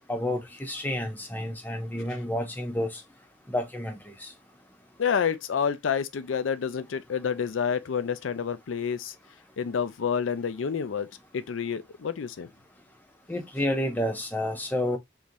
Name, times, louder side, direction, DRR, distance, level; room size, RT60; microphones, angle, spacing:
voice 1, 0.1-3.0 3.5-4.3 13.3-15.0, left 1 dB, 10° left, 0.8 m, -30 dB
voice 2, 5.0-9.1 9.6-12.5, left 7 dB, 85° left, 0.4 m, -29 dB
3.7 x 3.1 x 2.7 m
head